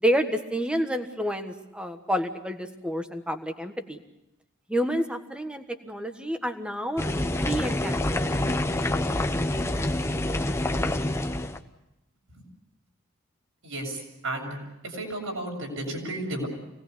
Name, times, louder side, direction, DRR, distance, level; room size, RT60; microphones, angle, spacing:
voice 1, 0.0-4.0 4.7-8.2, equal, 5° right, 7 dB, 1.4 m, -29 dB
boiling water, 7.0-11.6, left 1 dB, 15° left, 0.9 m, -27 dB
voice 2, 13.6-14.6 14.8-16.5, right 1 dB, 75° right, 0 dB, 7.4 m, -33 dB
26.0 x 19.0 x 8.4 m, 0.89 s
head